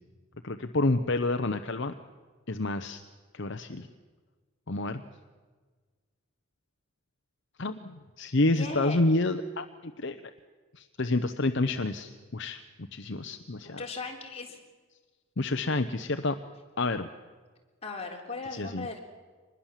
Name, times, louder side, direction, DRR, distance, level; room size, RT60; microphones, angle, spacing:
voice 1, 0.4-1.9 2.5-3.0 3.3-3.9 4.7-5.0 7.6-10.2 10.7-12.6 12.9-14.0 15.4-16.4 16.8-17.1 18.5-18.9, left 2 dB, 55° left, 9 dB, 0.8 m, -29 dB
voice 2, 8.5-9.0 13.6-14.6 17.8-19.0, left 4 dB, 30° left, 1 dB, 3.7 m, -38 dB
25.0 x 20.5 x 7.4 m, 1.4 s
head